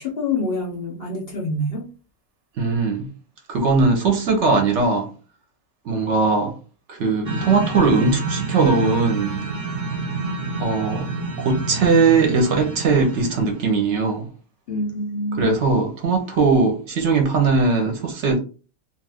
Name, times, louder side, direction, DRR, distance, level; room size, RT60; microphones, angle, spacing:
voice 1, 0.0-1.9 14.7-15.5, left 2 dB, 60° left, 0.7 m, -26 dB
voice 2, 2.6-3.1 3.5-5.1 5.8-6.5 6.9-9.4 10.6-11.1 11.4-14.3 15.4-18.4, right 4 dB, 65° right, 0.9 m, -19 dB
sound 1, 7.2-13.6, right 3 dB, 45° right, 0.4 m, -28 dB
2.5 x 2.4 x 3.4 m
omnidirectional pair, 1.5 m